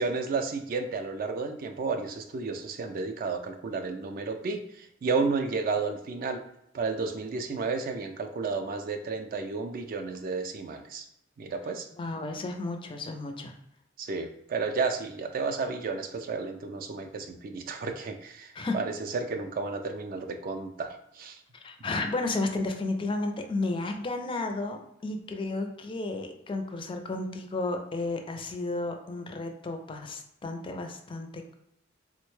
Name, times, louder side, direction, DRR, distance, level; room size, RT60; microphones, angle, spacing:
voice 1, 0.0-6.4 6.7-11.0 11.4-11.9 14.0-21.4, right 4 dB, 50° right, 6 dB, 0.4 m, -32 dB
voice 2, 12.0-13.5 18.6-18.8 21.5-31.5, left 2 dB, 25° left, 5 dB, 0.4 m, -33 dB
3.5 x 2.1 x 3.1 m, 0.78 s
head